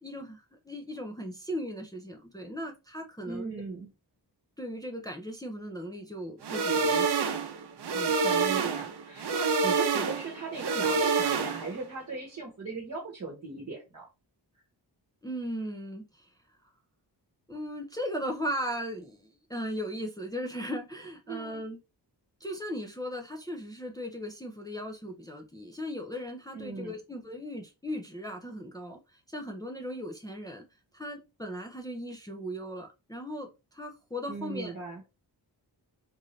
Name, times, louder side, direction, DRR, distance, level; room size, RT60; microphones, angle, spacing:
voice 1, 0.0-3.5 4.6-7.3 7.9-8.2 15.2-16.3 16.6-16.7 17.5-21.8 22.4-30.6 30.9-34.7, equal, 10° left, 0.5 m, -37 dB
voice 2, 3.2-3.9 8.1-14.1 21.3-21.6 26.5-27.0 34.3-35.0, right 3 dB, 35° right, 1.1 m, -38 dB
sound 1, 6.4-11.8, right 5 dB, 65° right, 0.7 m, -27 dB
3.8 x 2.6 x 3.1 m
wide cardioid pair, 120°, 42 cm